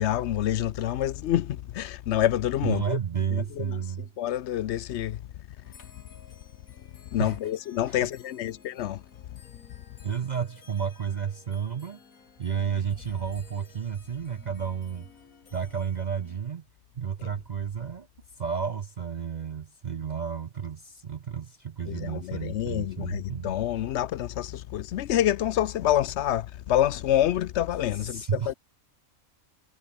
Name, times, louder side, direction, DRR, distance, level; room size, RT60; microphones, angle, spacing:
voice 1, 0.0-3.0 3.3-3.8 4.2-5.2 7.1-9.0 17.2-17.3 21.9-28.5, left 12 dB, 65° left, 0.8 m, -27 dB
voice 2, 2.6-4.1 7.2-7.4 7.9-8.0 10.0-12.0 12.4-15.1 15.5-16.6 17.0-18.1 18.4-23.5 28.0-28.5, right 7 dB, 55° right, 0.5 m, -31 dB
sound 1, 5.6-16.4, left 5 dB, 80° left, 2.4 m, -55 dB
omnidirectional pair, 1.4 m